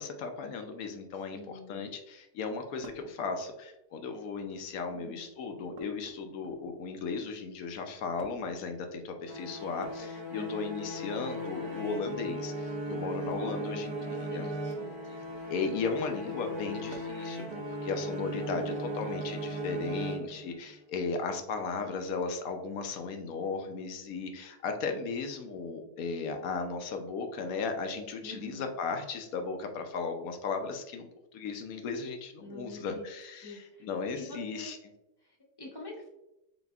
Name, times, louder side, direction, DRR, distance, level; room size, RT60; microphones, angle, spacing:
voice 1, 0.0-13.9 14.3-14.5 15.5-34.8, left 4 dB, 70° left, 5 dB, 0.9 m, -36 dB
voice 2, 1.3-1.9 4.9-5.2 10.3-10.9 13.3-14.9 18.3-19.1 28.2-28.7 32.4-33.1 33.4-33.9 34.2-34.8 35.2-36.1, left 2 dB, 20° left, -3 dB, 0.7 m, -46 dB
sound 1, 2.8-3.2 4.2-4.7 5.7-6.8 8.2-8.6 9.7-10.8 11.5-11.8 13.3-13.6 15.2-15.5 16.9-17.3 18.8-18.9 20.1-20.2, right 4 dB, 70° right, 0.9 m, -52 dB
sound 2, 9.3-20.7, right 1 dB, 50° right, 0.3 m, -37 dB
4.1 x 3.8 x 2.3 m, 0.92 s
omnidirectional pair, 1.7 m